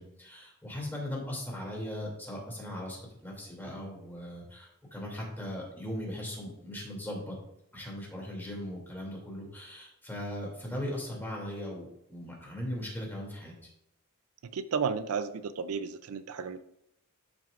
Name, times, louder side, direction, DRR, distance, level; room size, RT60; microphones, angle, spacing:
voice 1, 0.0-7.3 7.7-13.5, left 1 dB, 10° left, -2 dB, 2.6 m, -39 dB
voice 2, 14.5-16.6, right 5 dB, 80° right, 12 dB, 0.5 m, -33 dB
12.0 x 6.0 x 2.5 m, 0.79 s
head